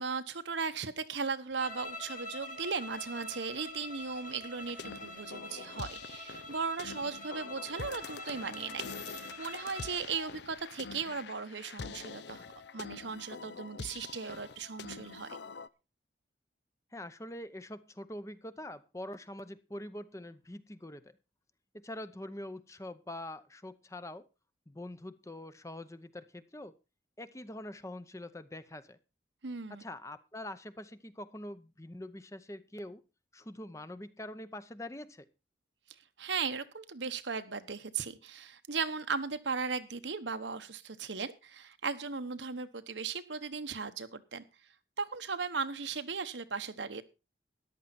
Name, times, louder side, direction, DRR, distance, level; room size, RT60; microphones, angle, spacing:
voice 1, 0.0-12.4 12.7-15.3 29.4-29.8 36.2-44.4 45.0-47.0, right 5 dB, 85° right, 10 dB, 1.1 m, -37 dB
sound 1, 1.6-10.0, left 1 dB, 45° left, 3.5 m, -45 dB
sound 2, 4.6-15.7, left 5 dB, 70° left, 0.6 m, -45 dB
voice 2, 16.9-21.0 21.7-24.3 24.7-26.7 27.2-29.0 29.7-33.0 33.3-35.3, left 1 dB, 15° left, 13 dB, 0.7 m, -44 dB
14.0 x 11.0 x 4.2 m, 0.29 s
head